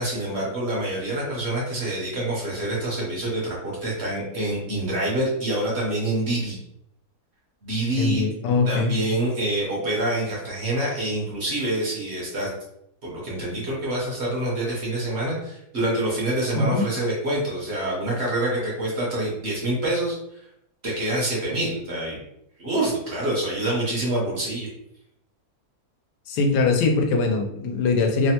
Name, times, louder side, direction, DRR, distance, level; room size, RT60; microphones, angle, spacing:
voice 1, 0.0-6.6 7.6-8.2 8.7-12.5 13.0-20.2 20.8-22.2 22.6-24.7, right 1 dB, 50° right, -4 dB, 0.9 m, -26 dB
voice 2, 8.0-9.0 16.5-16.9 26.3-28.3, left 3 dB, 85° left, 3 dB, 1.2 m, -22 dB
3.2 x 2.1 x 2.8 m, 0.78 s
omnidirectional pair, 1.7 m